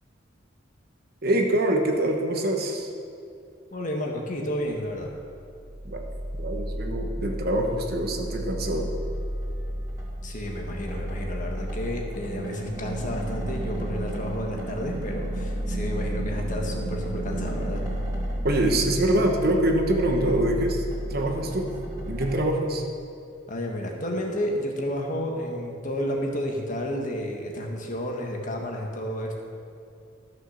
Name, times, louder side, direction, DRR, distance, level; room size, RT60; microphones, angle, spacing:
voice 1, 1.2-2.9 5.9-6.0 6.4-8.9 18.4-20.8 21.1-21.8 22.1-22.8, right 1 dB, 50° right, 2 dB, 1.2 m, -24 dB
voice 2, 3.7-5.1 10.2-17.8 23.5-29.4, equal, 40° left, 1 dB, 1.4 m, -31 dB
sound 1, 5.2-22.3, right 1 dB, 20° right, 2.8 m, -32 dB
13.0 x 6.5 x 6.4 m, 2.6 s
head